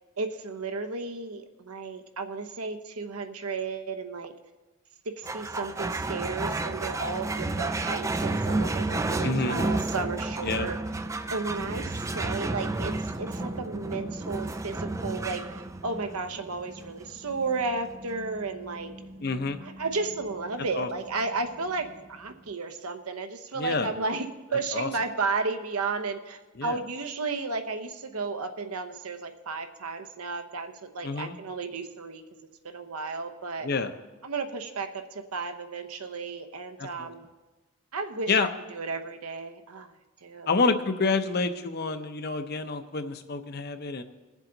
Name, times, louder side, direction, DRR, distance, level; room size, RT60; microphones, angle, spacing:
voice 1, 0.2-4.3 5.1-10.8 11.3-18.9 19.6-32.2 32.6-33.7 34.2-37.3 37.9-39.9 40.2-40.5, right 4 dB, 85° right, 7 dB, 0.9 m, -33 dB
sound 1, 5.2-22.0, right 2 dB, 15° right, 0.3 m, -32 dB
voice 2, 9.2-9.6 10.4-10.7 19.2-19.6 20.8-20.9 23.5-23.9 24.7-24.9 26.6-26.8 31.0-31.4 33.6-33.9 36.8-37.1 38.3-38.5 40.5-44.0, left 4 dB, 45° left, 9 dB, 0.7 m, -28 dB
20.5 x 7.4 x 3.9 m, 1.2 s
head